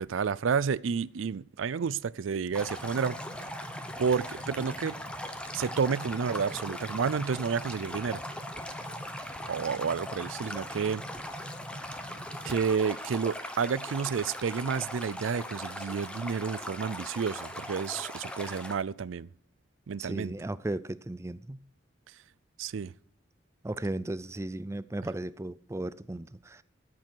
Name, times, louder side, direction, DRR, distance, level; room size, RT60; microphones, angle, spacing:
voice 1, 0.0-3.2 3.4-3.5 4.0-5.0 5.5-8.2 9.5-11.0 12.4-19.3 19.9-20.3 22.6-22.9, right 6 dB, 80° right, 0.4 m, -30 dB
Stream, 2.5-18.7, left 1 dB, 5° left, 1.1 m, -40 dB
sound 1, 2.5-12.5, equal, 30° right, 0.8 m, -46 dB
voice 2, 20.0-21.6 23.6-26.6, right 1 dB, 15° right, 0.4 m, -35 dB
13.5 x 8.3 x 4.6 m
head